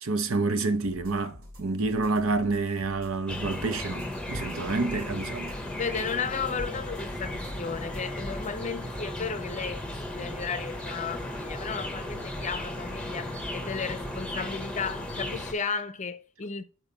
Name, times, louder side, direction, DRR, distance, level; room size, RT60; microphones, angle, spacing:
voice 1, 0.0-5.6, right 3 dB, 65° right, 0.8 m, -28 dB
sound 1, 0.8-8.6, left 1 dB, 90° right, 3.1 m, -48 dB
sound 2, 3.3-15.5, left 1 dB, 5° left, 0.8 m, -35 dB
voice 2, 5.8-16.6, left 5 dB, 35° left, 0.5 m, -34 dB
7.1 x 4.5 x 4.0 m
head